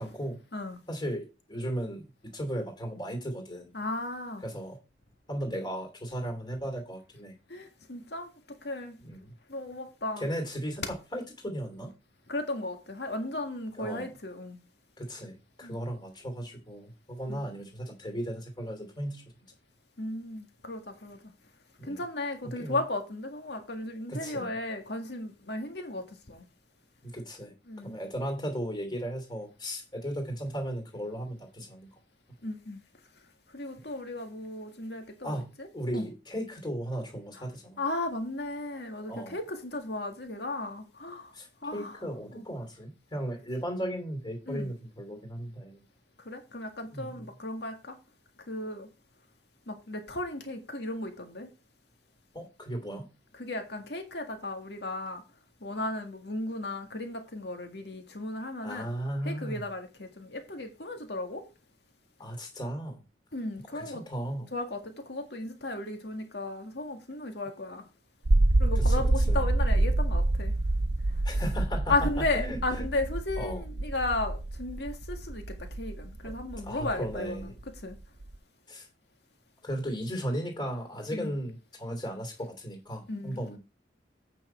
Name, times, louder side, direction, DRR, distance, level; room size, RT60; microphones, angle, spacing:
voice 1, 0.0-0.4 0.9-3.7 4.4-4.8 5.3-7.3 9.0-9.3 10.2-11.9 13.8-14.1 15.0-19.2 21.8-22.0 22.4-22.8 24.1-24.5 27.0-27.5 27.8-31.9 33.8-33.9 35.2-35.5 35.7-37.8 39.1-39.4 41.3-45.8 46.9-47.1 52.3-53.1 58.6-59.6 62.2-63.0 63.7-64.5 69.3-69.4 71.2-72.6 73.4-73.6 76.2-76.3 76.6-77.5 78.7-78.9 79.6-83.6, equal, 25° left, 2.8 m, -36 dB
voice 2, 3.7-4.4 7.5-9.0 9.5-10.3 12.3-14.6 15.6-15.8 17.3-17.4 20.0-21.2 21.8-26.5 27.7-28.0 32.4-32.8 33.5-36.1 37.3-37.4 37.8-41.3 41.6-42.0 42.3-42.5 44.5-44.7 46.2-48.0 48.5-48.9 49.7-51.5 53.3-55.2 55.6-58.9 59.3-61.4 63.3-64.0 64.5-67.9 68.6-70.5 71.1-71.4 71.9-77.5 77.8-78.0 81.1-81.3 83.1-83.4, left 2 dB, 65° left, 1.9 m, -35 dB
sound 1, 68.2-78.4, right 2 dB, 75° right, 0.8 m, -27 dB
8.7 x 5.9 x 4.5 m
head